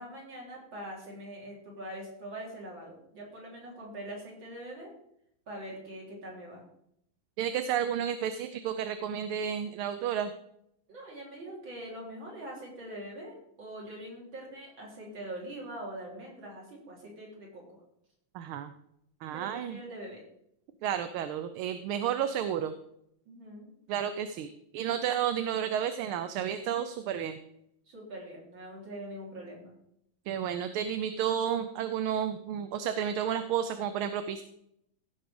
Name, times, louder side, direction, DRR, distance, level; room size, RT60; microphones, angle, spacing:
voice 1, 0.0-4.9 5.5-6.6 10.9-17.8 19.3-20.2 23.3-23.7 27.9-29.7, right 1 dB, 60° right, -3 dB, 4.2 m, -43 dB
voice 2, 7.4-10.3 18.3-18.7 19.2-19.8 20.8-22.7 23.9-27.4 30.3-34.4, right 9 dB, 80° right, 9 dB, 1.5 m, -31 dB
16.0 x 5.5 x 5.1 m, 0.75 s
omnidirectional pair, 2.4 m